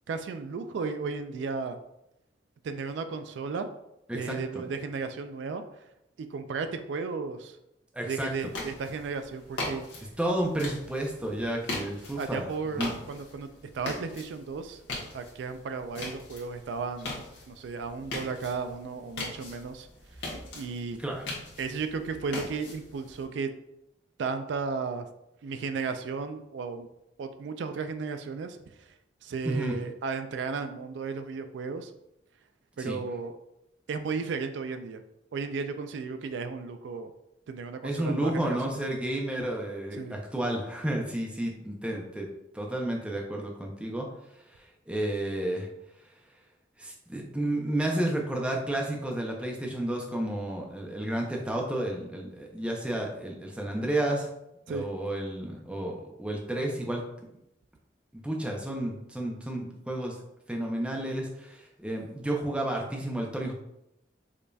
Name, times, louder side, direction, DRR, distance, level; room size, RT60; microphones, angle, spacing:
voice 1, 0.1-1.8 2.6-3.7 4.1-5.6 6.2-7.6 8.1-9.9 12.2-13.5 13.7-14.8 15.1-17.1 17.5-19.9 20.2-21.0 21.6-23.5 24.2-25.1 25.4-26.9 27.2-28.6 29.2-31.9 32.8-33.4 33.9-35.0 35.3-37.1 37.5-38.7 39.9-40.2 54.7-54.9, right 4 dB, 75° right, 8 dB, 0.3 m, -34 dB
voice 2, 4.1-4.6 7.9-8.3 10.2-12.5 12.8-13.0 21.0-21.2 29.4-29.8 32.8-33.0 37.8-42.3 42.5-44.1 44.9-45.7 46.8-54.3 54.7-57.0 58.1-60.2 60.5-63.5, right 1 dB, 5° right, 0 dB, 0.5 m, -31 dB
sound 1, 8.4-23.2, left 2 dB, 75° left, 1.1 m, -41 dB
5.0 x 2.7 x 2.3 m, 0.83 s
head